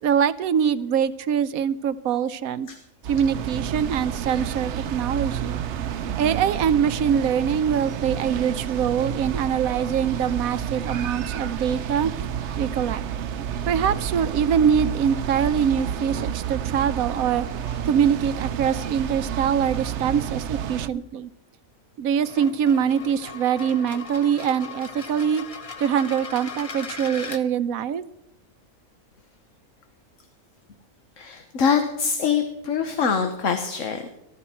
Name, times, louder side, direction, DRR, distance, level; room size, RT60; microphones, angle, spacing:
voice 1, 0.0-2.7 3.1-5.6 6.2-12.1 12.6-13.0 13.7-17.5 17.8-21.3 22.0-25.4 25.8-28.0, right 8 dB, 85° right, 14 dB, 1.2 m, -23 dB
sound 1, 3.0-20.9, right 9 dB, 60° right, 0.9 m, -30 dB
sound 2, 22.1-27.4, left 4 dB, 30° left, 0.8 m, -38 dB
voice 2, 31.2-34.1, left 6 dB, 65° left, 6 dB, 1.5 m, -24 dB
19.0 x 12.5 x 4.4 m, 0.81 s
omnidirectional pair, 1.4 m